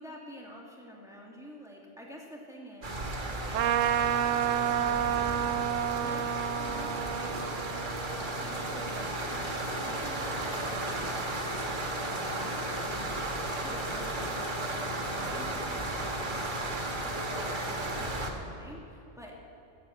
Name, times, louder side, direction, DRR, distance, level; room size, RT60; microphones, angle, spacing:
voice 1, 0.0-3.1 4.7-5.2 6.0-7.5 8.0-9.3 9.8-19.4, equal, ahead, -3 dB, 2.2 m, -47 dB
sound 1, 2.8-18.3, right 1 dB, 40° right, 1.4 m, -34 dB
Trumpet, 3.5-9.4, right 10 dB, 80° right, 1.0 m, -30 dB
17.0 x 7.3 x 7.4 m, 3.0 s
omnidirectional pair, 1.3 m